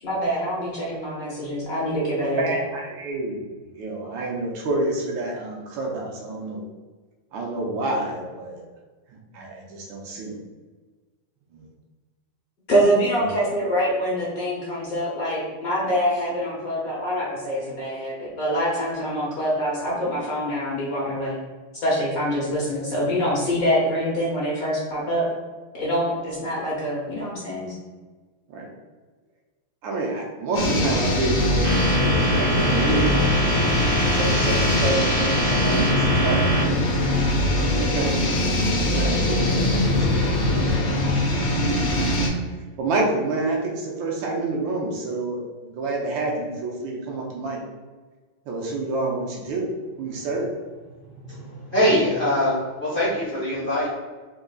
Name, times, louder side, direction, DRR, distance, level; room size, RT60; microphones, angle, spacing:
voice 1, 0.0-2.6 12.7-21.4 21.7-25.3 25.7-27.7, equal, 55° left, -6 dB, 1.1 m, -25 dB
voice 2, 2.4-3.5 3.7-6.6 7.3-8.6 9.1-10.4 11.5-11.7 13.2-13.4 28.5-28.7 29.8-33.2 34.1-36.7 37.7-38.1 38.4-40.3 40.8-40.9 42.8-47.6 48.5-49.7 50.0-50.5, right 2 dB, 75° right, -1 dB, 1.4 m, -28 dB
sound 1, 30.5-42.3, left 1 dB, 80° left, 0.6 m, -22 dB
sound 2, 31.6-36.6, right 1 dB, 60° right, 1.6 m, -25 dB
voice 3, 51.2-53.9, equal, 35° left, -8 dB, 1.0 m, -23 dB
3.7 x 3.6 x 2.3 m, 1.4 s
omnidirectional pair, 2.3 m